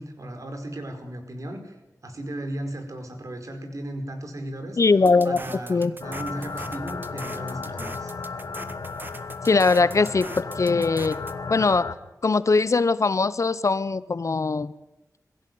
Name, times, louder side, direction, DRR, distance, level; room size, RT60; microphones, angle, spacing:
voice 1, 0.0-1.8 2.0-4.8 5.2-8.1, right 1 dB, 60° right, 5 dB, 5.0 m, -35 dB
voice 2, 4.8-5.4 5.7-5.9 9.4-11.2 11.5-11.9 12.2-14.7, left 4 dB, 55° left, 15 dB, 0.8 m, -21 dB
sound 1, 5.0-11.3, right 2 dB, 35° right, 1.7 m, -41 dB
sound 2, 6.0-11.9, left 4 dB, 85° left, 1.9 m, -34 dB
22.5 x 15.5 x 9.4 m, 0.98 s
wide cardioid pair, 80°, 6 cm